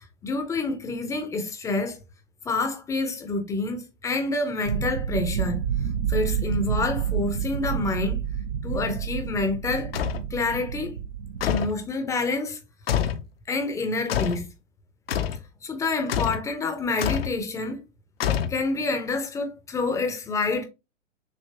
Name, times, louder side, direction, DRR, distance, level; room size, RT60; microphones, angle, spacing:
voice 1, 0.2-2.0 2.4-5.6 6.1-8.2 8.6-9.9 10.3-10.9 11.4-12.6 13.5-14.5 15.6-17.8 18.5-20.6, left 3 dB, 10° left, 0.7 m, -27 dB
sound 1, 4.6-11.5, right 8 dB, 60° right, 0.7 m, -29 dB
sound 2, 9.9-10.3 11.4-11.8 12.9-13.3 14.1-14.5 15.1-15.4 16.1-16.5 17.0-17.4 18.2-18.8, left 9 dB, 50° left, 0.7 m, -26 dB
6.6 x 2.8 x 2.9 m
figure-of-eight pair, 110°, 37 cm